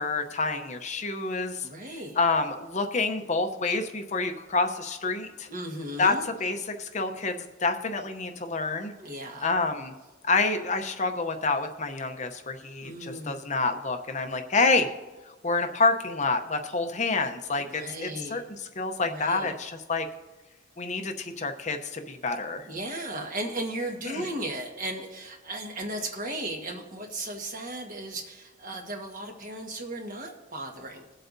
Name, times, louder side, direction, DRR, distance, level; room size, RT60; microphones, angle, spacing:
voice 1, 0.0-1.7 2.2-5.5 6.0-6.1 6.4-8.9 9.4-9.9 10.2-14.9 15.4-18.4 18.8-20.1 20.8-22.7 24.1-24.2, left 3 dB, 40° left, 6 dB, 0.7 m, -28 dB
voice 2, 1.6-2.2 5.5-6.2 9.0-9.5 12.8-13.4 17.5-18.4 19.0-19.6 22.7-31.1, right 1 dB, 45° right, 2 dB, 1.5 m, -36 dB
21.0 x 8.0 x 2.7 m, 1.2 s
head